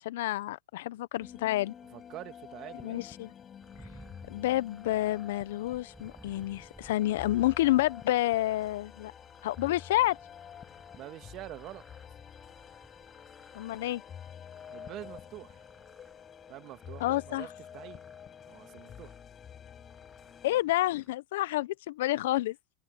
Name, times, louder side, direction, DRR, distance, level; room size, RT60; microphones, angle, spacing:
voice 1, 0.0-1.7 2.8-3.3 4.3-9.1 9.4-10.2 13.5-14.0 17.0-17.5 20.4-22.6, left 16 dB, 70° left, 1.0 m, -29 dB
sound 1, 1.2-20.6, left 8 dB, 30° left, 6.8 m, -49 dB
voice 2, 1.9-3.0 10.9-11.8 14.7-15.7 16.5-18.0 18.5-19.2, right 15 dB, 45° right, 2.0 m, -45 dB
sound 2, 3.6-21.1, right 2 dB, 5° right, 7.7 m, -59 dB
open air
hypercardioid pair, 95°, 0 cm